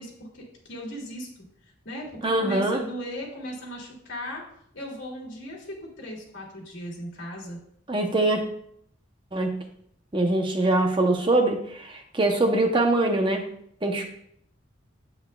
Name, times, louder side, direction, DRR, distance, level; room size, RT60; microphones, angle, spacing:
voice 1, 0.0-1.4 1.8-4.4 4.7-7.6, equal, 65° left, -2 dB, 2.5 m, -37 dB
voice 2, 2.2-2.8 7.9-8.4 9.3-9.6 10.1-13.5 13.8-14.0, right 2 dB, 25° right, 4 dB, 0.7 m, -23 dB
9.1 x 8.3 x 2.3 m, 0.69 s
head